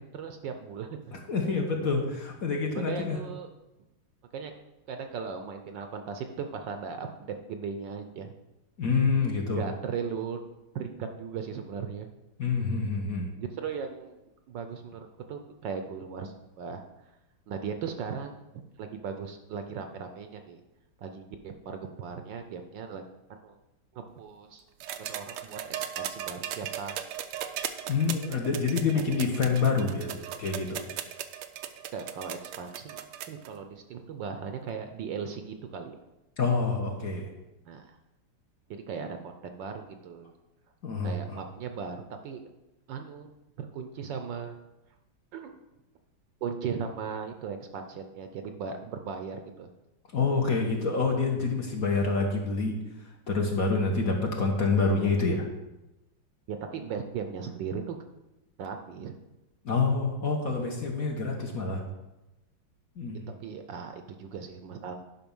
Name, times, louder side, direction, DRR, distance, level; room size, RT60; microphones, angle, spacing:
voice 1, 0.1-1.2 1.8-1.9 2.7-3.5 4.3-4.5 4.9-8.3 9.4-10.4 10.7-12.1 13.4-14.2 14.5-16.8 17.5-18.3 18.8-20.6 21.0-23.0 23.3-23.6 23.9-24.6 25.0-27.0 28.9-29.0 31.9-33.0 33.3-36.0 37.7-38.0 38.7-40.3 41.0-42.5 42.9-43.3 43.6-44.6 45.3-45.6 46.4-49.7 56.5-58.0 58.6-59.1 63.4-65.0, right 6 dB, 70° right, 6 dB, 1.3 m, -37 dB
voice 2, 1.1-3.2 8.8-9.6 12.4-13.3 27.9-30.8 36.4-37.3 40.8-41.4 50.1-52.8 53.3-55.5 59.6-61.8 63.0-63.2, left 4 dB, 50° left, 1 dB, 1.4 m, -27 dB
sound 1, 24.8-33.5 34.7-34.8, right 10 dB, 90° right, 1.5 m, -37 dB
10.5 x 5.6 x 5.4 m, 0.97 s
omnidirectional pair, 2.3 m